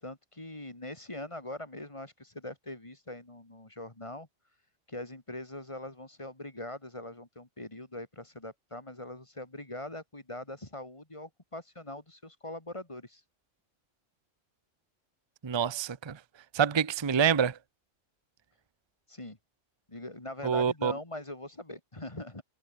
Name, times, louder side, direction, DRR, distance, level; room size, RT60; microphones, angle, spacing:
voice 1, 0.0-4.3 4.9-13.2 19.1-19.4 19.9-22.4, left 1 dB, 25° left, 2.5 m, -42 dB
voice 2, 15.4-16.2 16.5-17.6 20.4-20.9, right 7 dB, 30° right, 0.6 m, -26 dB
omnidirectional pair, 1.3 m